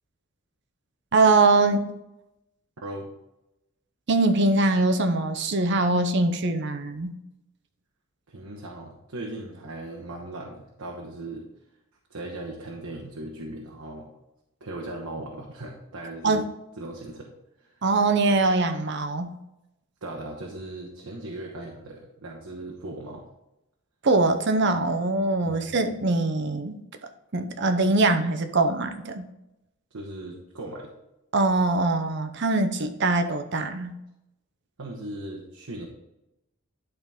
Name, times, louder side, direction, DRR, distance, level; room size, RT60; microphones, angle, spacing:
voice 1, 1.1-1.9 4.1-7.1 16.2-16.5 17.8-19.3 24.0-26.8 27.3-29.3 31.3-33.9, right 3 dB, 55° right, 8 dB, 0.7 m, -22 dB
voice 2, 8.3-11.5 12.1-14.1 14.6-16.4 16.8-17.3 17.6-17.7 20.0-23.2 25.4-25.9 29.9-30.9 34.8-35.9, right 1 dB, 85° right, -2 dB, 1.1 m, -38 dB
11.5 x 3.9 x 3.6 m, 0.90 s
head